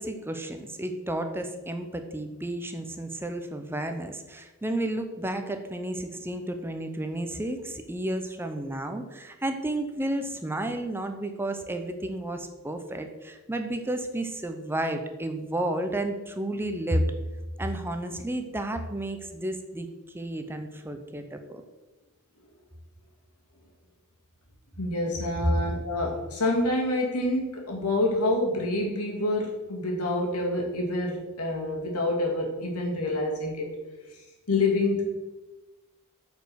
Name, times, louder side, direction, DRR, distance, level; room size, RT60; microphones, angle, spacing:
voice 1, 0.0-17.0 17.6-19.9 20.1-21.6 25.4-25.5, right 1 dB, 10° right, 6 dB, 0.7 m, -32 dB
voice 2, 24.8-33.7 34.1-35.0, left 2 dB, 80° left, -1 dB, 2.5 m, -27 dB
8.8 x 5.3 x 6.3 m, 1.1 s
head